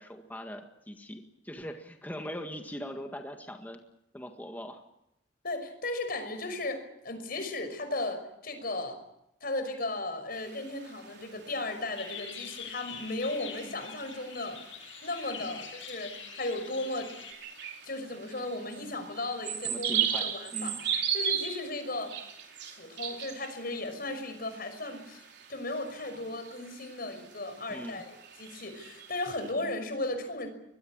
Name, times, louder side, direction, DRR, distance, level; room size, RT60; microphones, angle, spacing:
voice 1, 0.0-3.8 4.1-4.8 15.4-15.6 19.6-20.8 27.7-28.0, equal, 10° left, 4 dB, 1.8 m, -41 dB
voice 2, 5.4-9.0 9.4-14.6 15.0-17.1 17.8-22.2 22.7-25.2 25.5-30.5, left 2 dB, 50° left, 8 dB, 6.0 m, -36 dB
sound 1, 10.3-29.5, right 8 dB, 60° right, 4.6 m, -38 dB
sound 2, 12.0-17.3, left 7 dB, 85° left, 7.5 m, -44 dB
24.5 x 22.0 x 8.8 m, 0.82 s
head